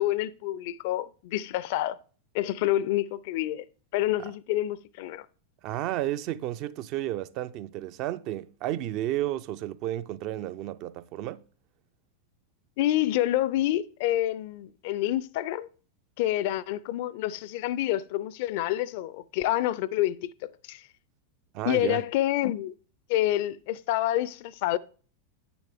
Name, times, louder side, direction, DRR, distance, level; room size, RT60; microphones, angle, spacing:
voice 1, 0.0-2.0 2.3-3.6 3.9-5.3 12.8-15.7 16.2-20.8 21.7-22.7 23.1-24.8, left 14 dB, 55° left, 0.5 m, -28 dB
voice 2, 5.6-11.4 21.5-22.0, right 14 dB, 45° right, 0.5 m, -32 dB
9.3 x 6.9 x 3.5 m
figure-of-eight pair, 90°, 0 cm